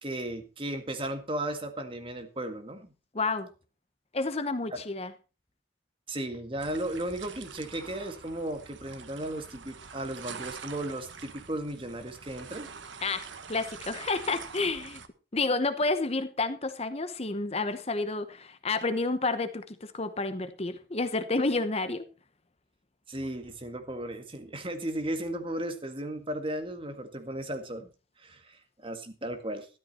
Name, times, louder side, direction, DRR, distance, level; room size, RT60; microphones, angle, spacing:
voice 1, 0.0-2.9 4.7-4.8 6.1-12.7 23.1-27.9 28.2-29.7, right 1 dB, 30° right, 7 dB, 1.9 m, -35 dB
voice 2, 3.1-3.5 4.1-5.1 13.0-15.0 15.3-22.1, left 3 dB, 35° left, 11 dB, 1.0 m, -30 dB
sound 1, 6.6-15.1, right 5 dB, 85° right, 1.3 m, -45 dB
13.0 x 12.5 x 4.2 m, 0.33 s
head